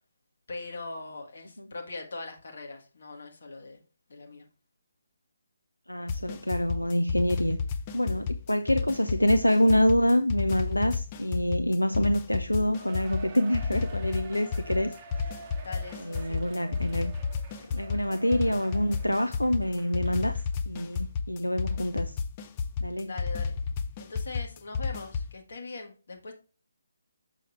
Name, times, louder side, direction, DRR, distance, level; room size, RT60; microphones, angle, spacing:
voice 1, 0.5-3.8 4.1-4.5 8.0-8.3 15.6-16.4 23.0-23.5 24.0-26.3, left 3 dB, 55° left, 1.7 m, -41 dB
voice 2, 5.9-7.6 7.9-14.9 16.0-17.1 17.7-22.2 22.8-23.1, equal, 85° left, 0.5 m, -26 dB
sound 1, 6.1-25.3, left 5 dB, 25° left, 0.5 m, -32 dB
Cheering, 12.8-20.5 20.9-21.0 21.7-21.8, right 4 dB, 25° right, 0.8 m, -48 dB
6.2 x 5.8 x 3.2 m
figure-of-eight pair, 145°, 0 cm